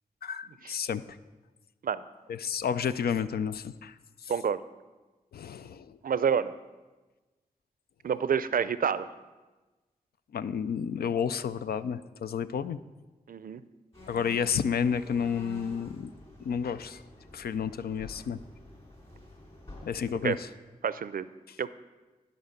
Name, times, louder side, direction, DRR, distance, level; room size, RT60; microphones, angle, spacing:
voice 1, 0.2-1.2 2.3-4.0 4.2-4.3 5.3-6.0 10.3-12.8 14.1-16.1 16.4-17.0 17.3-18.4 19.8-20.5, left 7 dB, 90° left, 13 dB, 0.4 m, -31 dB
voice 2, 4.3-4.6 6.0-6.5 8.0-9.1 13.3-13.6 20.2-20.4 20.8-21.3 21.6-21.7, right 7 dB, 70° right, 15 dB, 0.4 m, -28 dB
sound 1, 13.9-20.3, left 1 dB, 40° left, 3.4 m, -49 dB
11.5 x 5.2 x 6.5 m, 1.2 s
cardioid pair, 45°, 15 cm